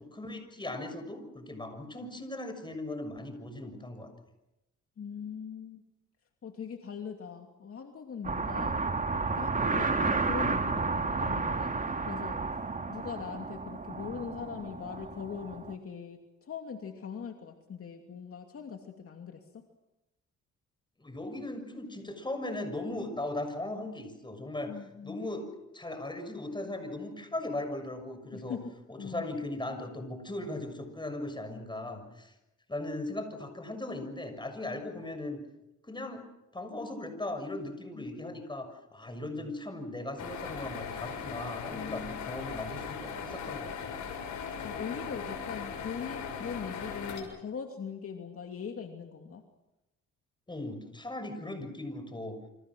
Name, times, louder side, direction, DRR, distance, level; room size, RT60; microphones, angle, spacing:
voice 1, 0.0-4.1 21.0-24.7 25.0-25.5 25.7-28.6 28.9-32.3 32.7-35.4 35.9-36.3 36.5-44.0 50.5-52.4, left 2 dB, 15° left, 7 dB, 6.6 m, -38 dB
voice 2, 5.0-5.8 6.4-8.8 9.4-12.4 12.9-19.6 24.6-25.2 28.3-29.2 31.5-31.6 37.9-38.1 41.7-42.3 44.6-49.4, left 6 dB, 50° left, 4 dB, 2.7 m, -41 dB
sound 1, 8.2-15.7, right 4 dB, 25° right, 2.1 m, -32 dB
sound 2, 40.2-47.2, left 6 dB, 75° left, 6.5 m, -39 dB
28.5 x 26.0 x 6.3 m, 0.93 s
cardioid pair, 90°, 30 cm